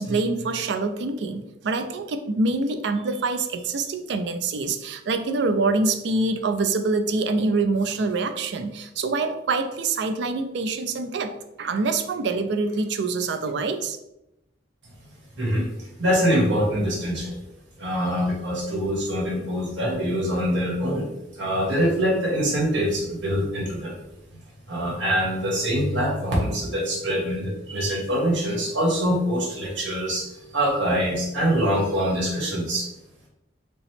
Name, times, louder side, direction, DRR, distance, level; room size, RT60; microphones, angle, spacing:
voice 1, 0.0-14.0, right 3 dB, 70° right, 7 dB, 0.4 m, -25 dB
voice 2, 16.0-17.3 17.8-21.1 21.3-24.0 24.7-32.9, equal, 85° right, -3 dB, 1.4 m, -24 dB
5.2 x 2.0 x 3.2 m, 0.88 s
head